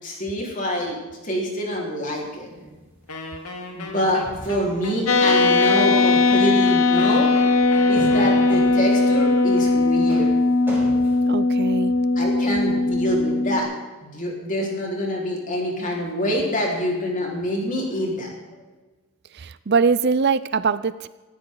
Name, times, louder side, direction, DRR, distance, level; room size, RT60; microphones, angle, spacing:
voice 1, 0.0-2.5 3.7-7.3 7.9-10.3 12.2-13.7 14.0-18.3, equal, 35° left, -1 dB, 4.4 m, -26 dB
sound 1, 2.1-2.9 3.5-3.6 4.2-5.0 5.5-5.7 6.2-6.5 6.8-7.1 7.4-11.2, right 1 dB, 10° right, 6.1 m, -38 dB
Wind instrument woodwind instrument, 3.1-8.9, left 2 dB, 85° left, 2.7 m, -37 dB
sound 2, 5.1-13.6, left 3 dB, 60° left, 1.2 m, -19 dB
voice 2, 11.3-11.9 19.3-21.1, right 5 dB, 50° right, 15 dB, 0.5 m, -22 dB
19.0 x 15.0 x 3.9 m, 1.2 s
head